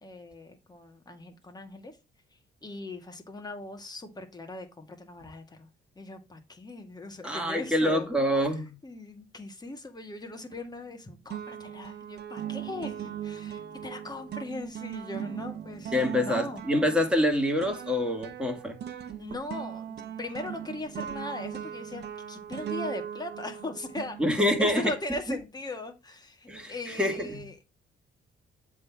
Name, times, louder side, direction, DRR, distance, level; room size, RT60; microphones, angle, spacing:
voice 1, 0.0-1.9 2.6-5.7 6.0-8.1 8.8-15.9 16.2-16.6 19.2-27.5, left 2 dB, 20° left, 1.9 m, -39 dB
voice 2, 7.2-8.7 15.9-18.8 24.2-24.9 26.5-27.4, left 1 dB, 5° right, 2.2 m, -26 dB
sound 1, 10.5-11.0 11.3-24.7, right 9 dB, 55° right, 1.1 m, -39 dB
7.7 x 3.8 x 5.9 m
cardioid pair, 90°, 20 cm